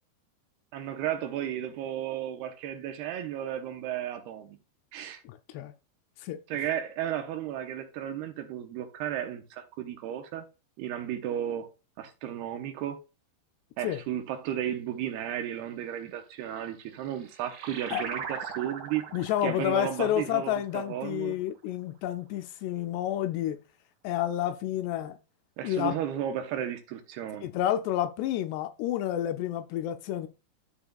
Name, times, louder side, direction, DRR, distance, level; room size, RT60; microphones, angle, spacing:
voice 1, 0.7-4.6 4.9-5.2 6.5-10.4 10.8-11.7 12.0-13.0 13.8-19.0 19.4-21.4 25.6-27.5, right 10 dB, 75° right, 2.6 m, -34 dB
voice 2, 5.2-5.7 6.2-6.4 13.8-14.0 17.9-18.0 19.1-23.6 24.0-25.2 25.6-25.9 27.4-30.3, left 12 dB, 80° left, 2.5 m, -30 dB
sound 1, 16.7-21.7, right 7 dB, 55° right, 2.4 m, -41 dB
12.5 x 5.9 x 2.3 m
omnidirectional pair, 5.0 m